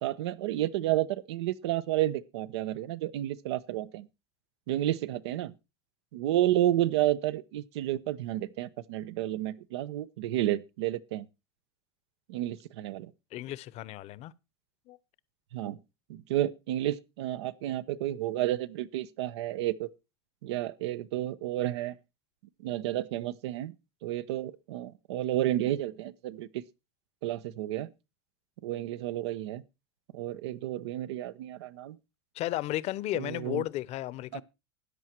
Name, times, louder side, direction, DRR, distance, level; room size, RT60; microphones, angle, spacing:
voice 1, 0.0-4.1 4.7-5.5 6.1-11.3 12.3-13.1 15.5-15.8 16.1-19.9 20.4-21.9 22.6-23.7 24.0-26.5 27.2-27.9 28.6-29.6 30.1-32.0 33.1-33.6 34.3-34.4, right 13 dB, 85° right, 0.9 m, -31 dB
voice 2, 13.3-14.3 14.9-15.0 32.3-34.4, left 15 dB, 55° left, 0.9 m, -34 dB
13.5 x 9.8 x 4.5 m
supercardioid pair, 105°, 14 cm